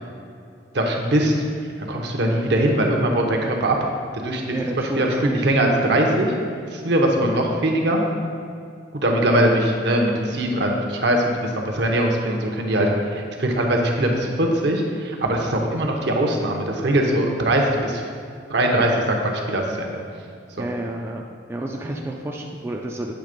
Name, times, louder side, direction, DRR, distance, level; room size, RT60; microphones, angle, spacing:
voice 1, 0.7-1.3 1.9-3.8 4.2-4.5 5.0-6.3 6.7-8.0 8.9-12.9 13.2-18.0 18.5-20.0, right 1 dB, 60° right, 1 dB, 0.8 m, -21 dB
voice 2, 4.5-5.5 20.6-21.2 21.5-23.1, right 1 dB, 15° right, 0 dB, 0.3 m, -30 dB
8.1 x 3.4 x 5.1 m, 2.4 s
head